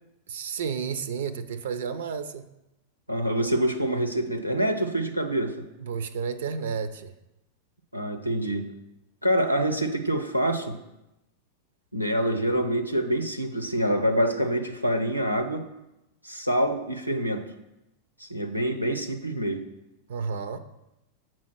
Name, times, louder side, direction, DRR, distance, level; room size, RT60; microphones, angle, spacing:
voice 1, 0.3-2.5 5.8-7.1 20.1-20.6, right 6 dB, 60° right, 13 dB, 0.5 m, -31 dB
voice 2, 3.1-5.6 7.9-8.7 9.2-10.8 11.9-15.7 16.2-17.4 18.2-19.6, right 1 dB, 90° left, 6 dB, 0.7 m, -26 dB
7.4 x 4.4 x 6.0 m, 0.90 s
figure-of-eight pair, 90°, 0 cm